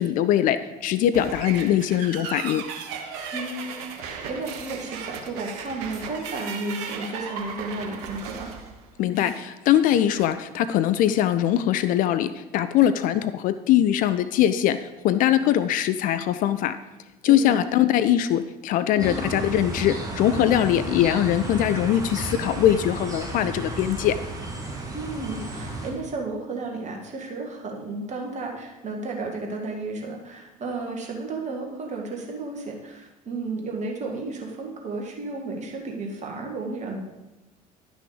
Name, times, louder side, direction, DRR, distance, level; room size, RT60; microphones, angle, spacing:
voice 1, 0.0-2.6 9.0-16.8 17.2-24.2, left 11 dB, 45° left, 12 dB, 0.4 m, -22 dB
sound 1, 1.1-9.5, right 6 dB, 60° right, 1.0 m, -36 dB
voice 2, 3.3-8.5 12.8-13.1 17.3-17.4 19.0-19.3 24.9-37.0, right 3 dB, 35° right, 0 dB, 2.0 m, -33 dB
sound 2, 19.0-25.9, right 2 dB, 15° right, 2.2 m, -33 dB
11.0 x 6.2 x 5.0 m, 1.0 s
figure-of-eight pair, 60°, 20 cm